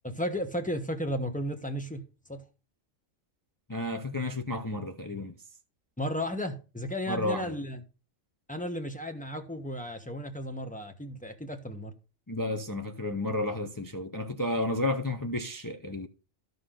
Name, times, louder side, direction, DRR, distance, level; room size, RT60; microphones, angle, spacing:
voice 1, 0.0-2.4 6.0-7.8 8.5-11.9, equal, 5° left, 1.1 m, -34 dB
voice 2, 3.7-5.3 7.1-7.5 12.3-16.1, left 2 dB, 25° left, 0.5 m, -32 dB
12.5 x 6.6 x 3.8 m
omnidirectional pair, 1.3 m